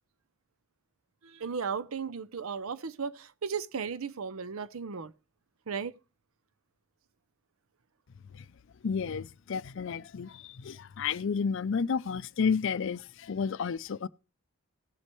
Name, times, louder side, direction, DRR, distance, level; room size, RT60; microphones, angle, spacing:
voice 1, 1.2-5.1 5.7-6.0, right 6 dB, 80° right, 0.7 m, -35 dB
voice 2, 8.8-14.1, left 6 dB, 60° left, 0.4 m, -31 dB
18.0 x 7.5 x 3.1 m
head